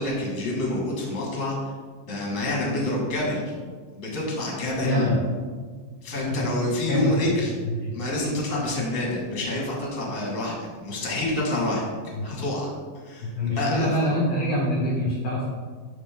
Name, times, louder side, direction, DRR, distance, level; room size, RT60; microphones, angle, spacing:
voice 1, 0.0-1.6 2.0-3.6 3.9-5.1 6.0-7.6 7.9-10.5 10.8-11.8 12.2-12.7 13.0-14.1, left 1 dB, 30° left, -3 dB, 1.8 m, -27 dB
voice 2, 4.8-5.2 6.1-6.5 6.9-7.1 7.7-8.0 12.2-12.3 13.4-15.5, left 1 dB, 65° left, -3 dB, 1.8 m, -25 dB
12.0 x 4.2 x 3.7 m, 1.5 s
omnidirectional pair, 4.0 m